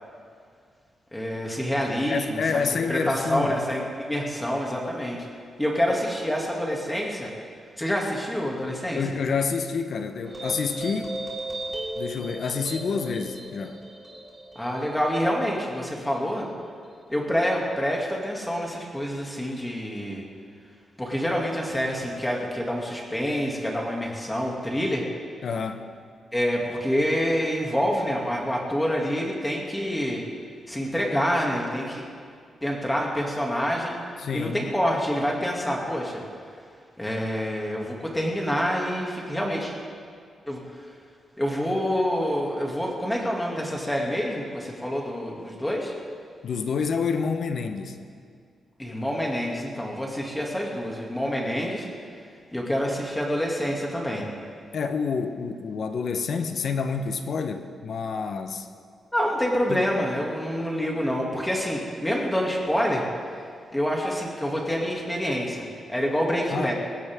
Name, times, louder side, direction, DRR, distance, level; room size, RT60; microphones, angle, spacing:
voice 1, 1.1-5.2 5.6-7.3 7.8-9.0 14.5-16.5 17.1-20.2 21.0-25.1 26.3-30.2 30.7-32.0 32.6-33.9 34.3-36.2 37.0-39.7 40.5-40.8 41.4-45.9 48.8-51.9 52.5-54.3 59.1-63.1 63.7-66.7, equal, 10° left, -2 dB, 2.6 m, -27 dB
voice 2, 2.1-3.6 5.9-6.0 8.9-11.2 11.9-13.8 25.4-25.8 34.2-34.7 46.4-48.0 54.7-58.7 59.7-59.8 66.5-66.7, left 5 dB, 60° left, 7 dB, 1.1 m, -28 dB
sound 1, 10.3-17.1, right 1 dB, 10° right, 4.6 m, -37 dB
21.0 x 17.0 x 3.8 m, 2.2 s
wide cardioid pair, 125°, 0 cm